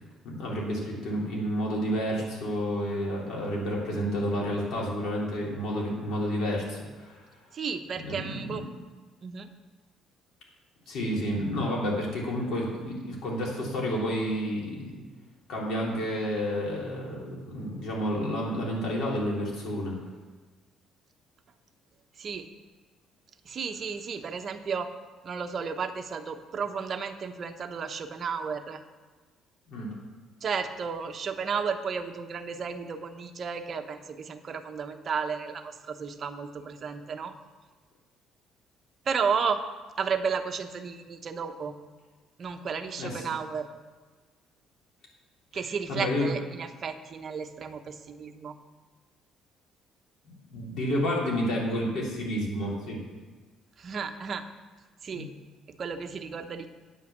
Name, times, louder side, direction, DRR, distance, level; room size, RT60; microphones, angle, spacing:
voice 1, 0.2-7.2 7.9-8.6 10.9-15.0 15.5-19.9 29.7-29.9 42.9-43.3 45.9-46.3 50.5-53.0 55.1-55.2, equal, 65° left, -3 dB, 3.4 m, -30 dB
voice 2, 7.5-8.6 9.2-9.5 22.2-22.4 23.5-24.9 25.2-28.8 30.4-37.3 39.1-39.6 40.0-41.7 42.4-43.7 45.5-48.5 53.8-54.4 55.0-55.3 55.8-56.7, right 6 dB, 40° right, 7 dB, 0.8 m, -33 dB
9.3 x 5.6 x 7.3 m, 1.3 s
cardioid pair, 125°, 0 cm